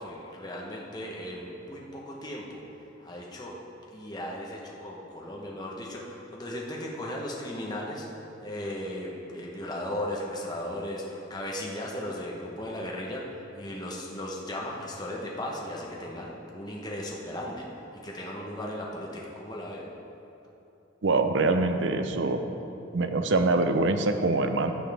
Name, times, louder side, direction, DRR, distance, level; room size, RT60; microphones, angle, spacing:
voice 1, 0.0-2.6 3.0-3.6 3.9-8.1 8.4-13.2 13.6-17.7 18.0-19.8, left 1 dB, 20° left, -3 dB, 1.0 m, -36 dB
voice 2, 21.0-22.4 22.9-24.7, right 3 dB, 75° right, 7 dB, 0.6 m, -24 dB
15.0 x 7.2 x 3.5 m, 2.8 s
head